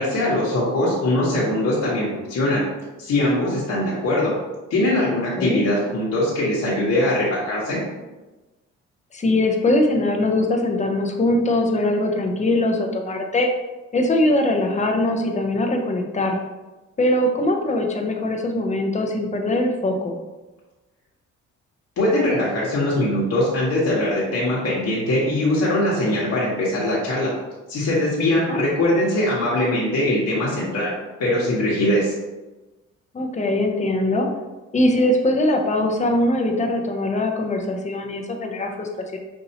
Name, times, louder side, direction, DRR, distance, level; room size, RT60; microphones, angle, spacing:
voice 1, 0.0-2.6 3.0-4.3 4.7-7.8 22.0-27.3 27.7-30.9 31.2-32.1, left 1 dB, 60° left, -7 dB, 1.2 m, -21 dB
voice 2, 9.1-13.5 13.9-16.4 17.0-20.2 28.5-28.6 33.1-34.3 34.7-39.2, left 1 dB, 25° left, 2 dB, 0.7 m, -21 dB
5.4 x 2.7 x 2.8 m, 1.1 s
cardioid pair, 90°, 30 cm